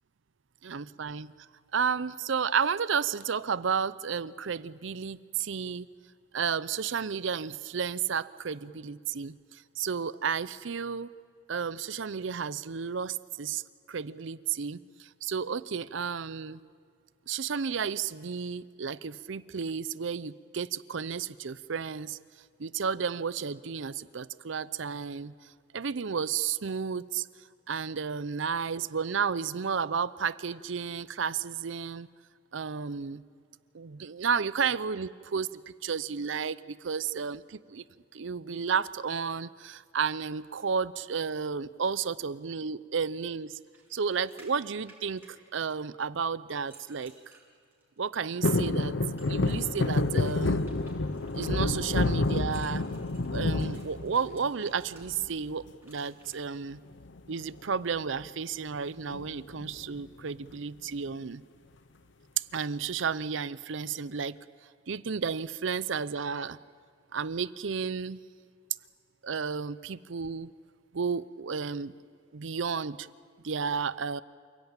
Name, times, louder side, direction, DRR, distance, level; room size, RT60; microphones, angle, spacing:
voice 1, 0.6-1.3 1.7-5.9 6.3-11.1 11.5-13.6 13.9-16.6 17.3-22.2 22.6-25.3 25.7-27.3 27.7-32.1 32.5-33.2 33.7-37.8 38.1-43.6 43.9-47.1 48.0-49.0 49.2-50.6 51.3-52.8 53.3-56.8 57.3-61.4 62.5-64.4 64.9-66.6 67.1-68.2 69.2-70.5 70.9-71.9 72.3-73.1 73.4-74.2, right 6 dB, 65° right, 17 dB, 0.6 m, -32 dB
sound 1, 43.5-46.0 46.5-48.0 49.2-55.0 55.8-56.4, right 2 dB, 10° right, 6.5 m, -58 dB
sound 2, 48.4-54.6 55.0-55.6 56.9-57.3 57.6-57.7 58.0-58.3 59.1-60.0 60.5-60.6, left 2 dB, 60° left, 0.8 m, -29 dB
28.0 x 16.5 x 8.9 m, 2.2 s
head